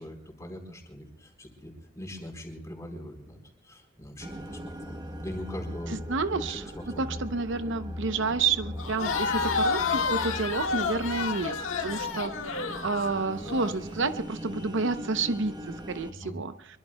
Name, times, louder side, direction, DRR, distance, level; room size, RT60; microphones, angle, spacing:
voice 1, 0.0-3.4 3.6-6.0 6.3-7.0 16.1-16.4, equal, 15° left, 2 dB, 4.0 m, -42 dB
sound 1, 4.2-12.0, left 1 dB, ahead, 5.9 m, -42 dB
sound 2, 4.2-16.1, equal, 20° right, 1.1 m, -42 dB
voice 2, 5.9-6.6 7.0-11.6 11.8-16.8, right 4 dB, 65° right, 10 dB, 0.8 m, -30 dB
Crowd, 8.8-13.8, left 5 dB, 75° left, 1.7 m, -30 dB
25.0 x 23.0 x 2.3 m, 0.73 s
head